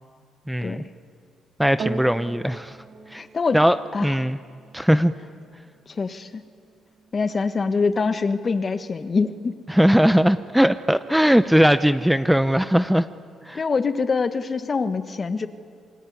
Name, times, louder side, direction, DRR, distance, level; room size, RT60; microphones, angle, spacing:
voice 1, 0.5-0.8 1.6-2.8 3.1-3.2 3.5-4.4 4.7-5.1 9.7-13.1 13.4-13.6, equal, 5° right, 12 dB, 0.7 m, -19 dB
sound 1, 1.8-10.4 11.1-11.2, right 4 dB, 55° right, 2.4 m, -41 dB
voice 2, 3.1-3.6 3.9-4.2 5.9-6.4 7.1-9.5 13.5-15.5, left 4 dB, 35° left, 10 dB, 1.6 m, -24 dB
27.5 x 21.5 x 9.7 m, 2.3 s
cardioid pair, 90°, 0 cm